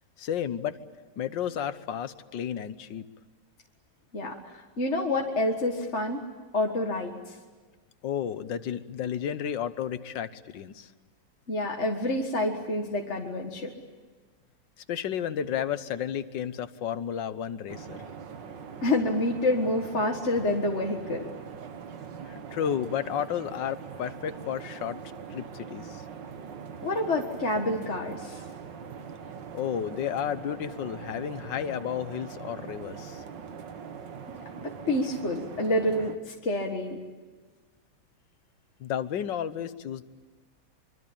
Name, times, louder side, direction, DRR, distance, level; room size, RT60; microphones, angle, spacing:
voice 1, 0.2-0.8 1.2-3.1 8.0-10.9 14.9-18.1 22.2-25.0 25.3-26.0 29.5-33.2 38.8-40.0, left 9 dB, 80° left, 12 dB, 1.7 m, -32 dB
voice 2, 4.1-6.3 6.5-7.3 11.5-13.7 18.8-21.3 26.8-28.4 34.6-37.0, left 1 dB, 40° left, 1 dB, 2.0 m, -28 dB
sound 1, 17.7-36.2, right 6 dB, 75° right, 2.1 m, -42 dB
25.0 x 24.5 x 8.8 m, 1.3 s
omnidirectional pair, 1.9 m